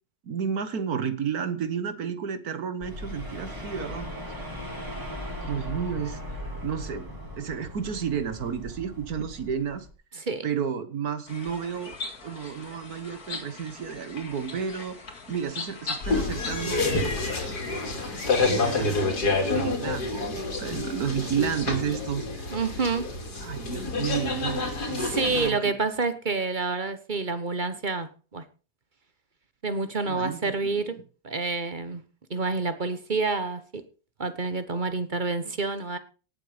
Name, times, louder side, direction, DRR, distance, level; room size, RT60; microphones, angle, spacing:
voice 1, 0.2-4.4 5.4-7.1 7.4-9.9 10.1-12.0 12.2-16.9 17.4-19.1 19.5-22.5 23.4-25.7 30.1-30.9, right 7 dB, 65° right, 12 dB, 1.8 m, -32 dB
sound 1, 2.8-9.9, left 1 dB, 10° right, 3.4 m, -38 dB
sound 2, 11.3-19.1, left 3 dB, 65° left, 2.6 m, -39 dB
sound 3, 16.0-25.5, left 3 dB, 85° left, 3.4 m, -28 dB
voice 2, 22.5-23.1 25.0-28.4 29.6-31.0 31.2-32.0 32.3-33.8 34.2-36.0, right 3 dB, 30° right, 11 dB, 1.2 m, -28 dB
17.5 x 7.7 x 5.2 m, 0.36 s
omnidirectional pair, 1.7 m